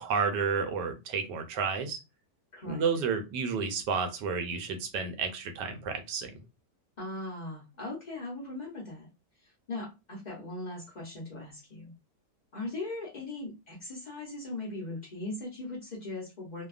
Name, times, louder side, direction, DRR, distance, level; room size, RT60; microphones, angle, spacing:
voice 1, 0.0-2.0 2.7-6.3, right 5 dB, 85° right, 7 dB, 1.2 m, -31 dB
voice 2, 2.5-2.8 7.0-9.1 9.4-11.9 12.5-16.7, left 2 dB, 60° left, -4 dB, 0.4 m, -39 dB
2.7 x 2.2 x 2.4 m, 0.26 s
omnidirectional pair, 1.8 m